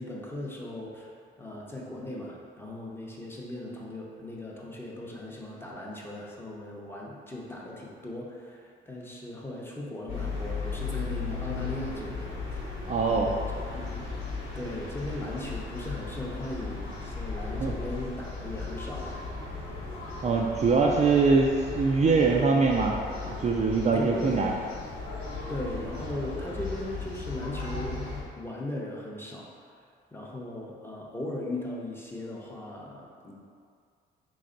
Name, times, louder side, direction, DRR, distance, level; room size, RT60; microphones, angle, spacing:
voice 1, 0.0-12.8 13.1-14.1 14.5-19.2 23.9-24.4 25.5-29.5 30.1-33.4, left 1 dB, 10° left, -3 dB, 0.7 m, -38 dB
sound 1, 10.1-28.2, left 4 dB, 80° left, 1.2 m, -36 dB
voice 2, 12.9-13.3 17.6-17.7 20.2-23.0 23.2-24.5, right 4 dB, 35° right, -1 dB, 0.4 m, -23 dB
3.3 x 3.2 x 3.8 m, 2.2 s
cardioid pair, 90°, 20 cm